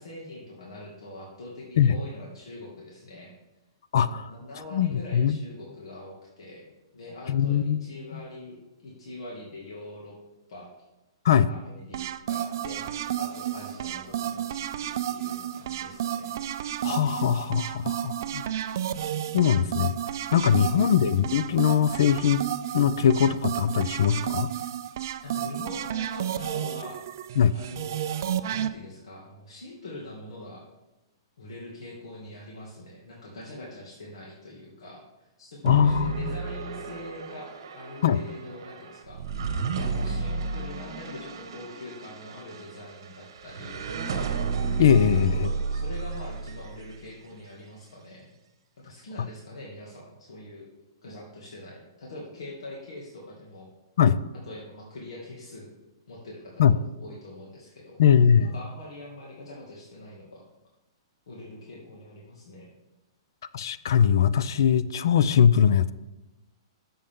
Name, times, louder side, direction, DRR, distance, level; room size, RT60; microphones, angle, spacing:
voice 1, 0.0-3.3 4.0-10.2 10.5-10.7 11.5-12.9 13.2-16.4 25.2-27.0 27.5-30.6 31.4-39.5 39.9-43.8 45.1-48.3 48.8-50.6 51.0-53.7 54.4-55.7 56.1-58.0 58.4-60.5 61.3-62.7, left 1 dB, 90° left, -2 dB, 2.2 m, -43 dB
voice 2, 3.9-4.3 4.7-5.4 7.3-7.8 8.1-8.2 11.3-11.5 16.8-18.4 19.3-19.9 20.3-22.4 22.7-24.5 27.4-27.5 35.6-36.3 38.0-38.2 44.8-45.5 54.0-54.2 56.6-56.7 58.0-58.5 63.5-65.9, left 8 dB, 50° left, 16 dB, 0.4 m, -21 dB
sound 1, 11.9-28.7, right 11 dB, 40° right, 0.4 m, -32 dB
sound 2, 35.7-47.0, right 5 dB, 60° right, 1.2 m, -32 dB
13.0 x 6.9 x 3.7 m, 1.0 s
hypercardioid pair, 180°, 3 cm